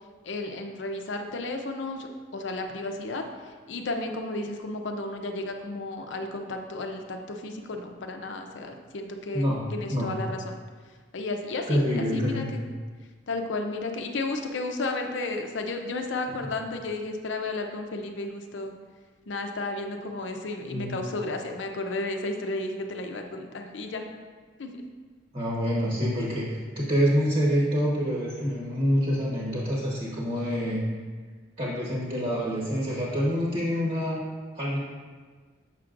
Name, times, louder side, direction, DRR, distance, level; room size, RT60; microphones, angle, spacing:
voice 1, 0.2-3.2 3.7-10.6 11.1-12.6 13.3-18.7 19.3-24.1 24.6-24.7, left 2 dB, 70° left, 4 dB, 0.6 m, -33 dB
voice 2, 11.7-12.5 20.7-21.0 25.3-30.8 31.6-34.2 34.5-34.8, equal, 40° right, -5 dB, 1.2 m, -26 dB
7.4 x 5.9 x 2.5 m, 1.5 s
head